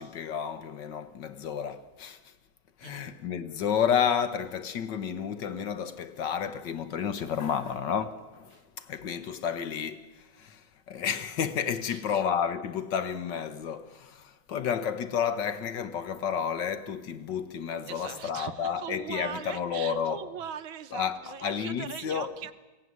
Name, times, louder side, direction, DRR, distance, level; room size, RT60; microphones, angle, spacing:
voice 1, 0.0-2.2 2.8-20.2 20.9-22.3, left 7 dB, 60° left, 1.5 m, -31 dB
voice 2, 11.8-12.2 17.9-22.5, right 9 dB, 70° right, 1.7 m, -40 dB
22.5 x 17.0 x 9.5 m
omnidirectional pair, 2.3 m